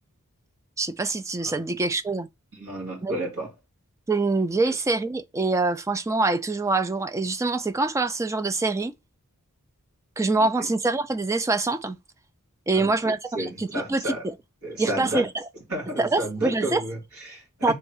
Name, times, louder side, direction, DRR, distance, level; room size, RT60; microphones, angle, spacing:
voice 1, 0.8-2.3 3.0-3.2 4.1-8.9 10.2-12.0 12.7-14.1 14.8-15.3 16.0-16.8 17.6-17.7, right 3 dB, 15° right, 0.3 m, -25 dB
voice 2, 2.5-3.5 4.7-4.8 10.4-10.7 12.7-14.3 14.6-15.3 15.7-17.7, right 1 dB, 70° right, 2.0 m, -32 dB
3.5 x 3.1 x 4.5 m
head